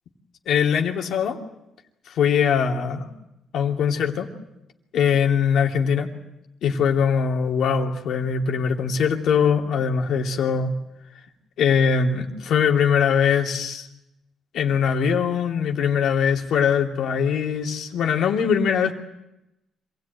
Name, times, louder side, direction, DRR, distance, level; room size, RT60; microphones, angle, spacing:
voice 1, 0.5-1.4 2.1-3.1 3.5-4.3 4.9-6.1 6.6-10.7 11.6-13.9 14.5-18.9, left 7 dB, 75° left, 1 dB, 2.8 m, -21 dB
26.5 x 17.5 x 9.3 m, 0.91 s
cardioid pair, 75°, 0 cm